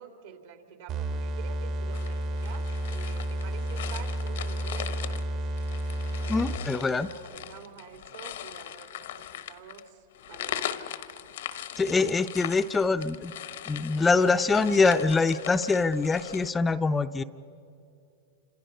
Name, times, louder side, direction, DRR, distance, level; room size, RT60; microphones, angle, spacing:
voice 1, 0.0-5.4 6.3-11.0, right 8 dB, 70° right, 4 dB, 3.2 m, -48 dB
sound 1, 0.9-6.8, right 1 dB, 45° right, 1.4 m, -31 dB
sound 2, 1.9-16.5, left 11 dB, 75° left, 1.1 m, -40 dB
voice 2, 6.3-7.1 11.8-13.3 13.7-17.2, left 4 dB, 15° left, 9 dB, 0.6 m, -24 dB
28.5 x 27.0 x 5.6 m, 2.5 s
hypercardioid pair, 125°, 0 cm